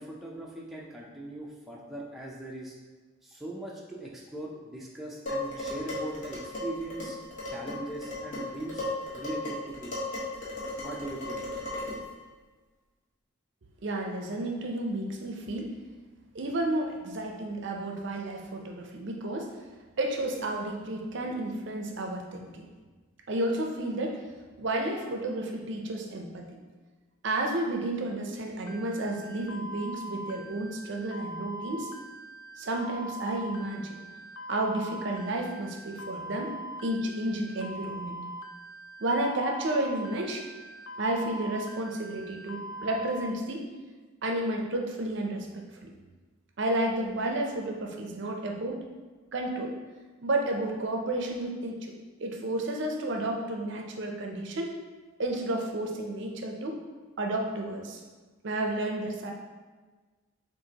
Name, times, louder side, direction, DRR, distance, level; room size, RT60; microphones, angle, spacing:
voice 1, 0.0-2.8 3.2-7.2 7.5-8.8 9.1-9.9 10.8-11.4, right 1 dB, ahead, -5 dB, 0.4 m, -40 dB
Dishes pots and pans, 5.3-12.1, left 2 dB, 35° left, 1.0 m, -36 dB
voice 2, 13.8-15.8 16.3-19.6 20.0-22.7 23.3-24.3 24.6-26.6 27.2-31.9 32.6-34.0 34.5-36.6 36.8-38.2 39.0-40.5 41.0-43.7 44.2-45.9 46.6-48.8 49.3-49.7 50.2-51.9 52.2-54.8 55.2-56.8 57.2-58.0 58.4-59.3, right 1 dB, 55° right, 2 dB, 0.5 m, -31 dB
sound 1, 28.7-43.3, right 1 dB, 70° left, 0.4 m, -42 dB
6.4 x 2.5 x 2.8 m, 1.3 s
head